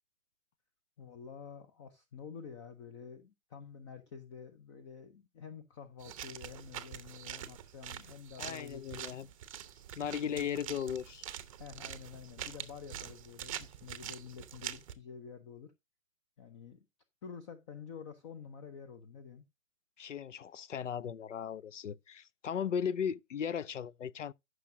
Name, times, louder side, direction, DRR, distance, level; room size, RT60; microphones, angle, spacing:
voice 1, 1.0-9.2 10.0-10.9 11.6-15.7 16.4-16.9 17.2-19.4, left 6 dB, 20° left, 0.7 m, -49 dB
sound 1, 6.0-14.9, right 10 dB, 25° right, 0.8 m, -45 dB
voice 2, 8.4-9.3 10.0-11.3 20.0-24.3, left 8 dB, 65° left, 0.6 m, -37 dB
14.5 x 6.2 x 2.7 m
figure-of-eight pair, 130°, 40 cm